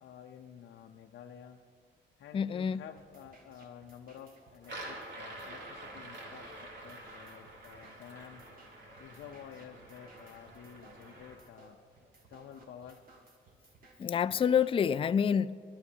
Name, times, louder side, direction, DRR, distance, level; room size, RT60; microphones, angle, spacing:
voice 1, 0.0-1.6 2.2-8.4 9.0-11.8 12.3-13.0, left 8 dB, 65° left, 0.7 m, -51 dB
voice 2, 2.3-2.8 14.0-15.6, left 7 dB, 25° left, 0.3 m, -27 dB
sound 1, 3.0-15.0, right 2 dB, 45° right, 2.0 m, -61 dB
sound 2, 4.6-11.4, right 1 dB, 65° right, 3.1 m, -47 dB
22.0 x 12.5 x 2.8 m
cardioid pair, 90°, 20 cm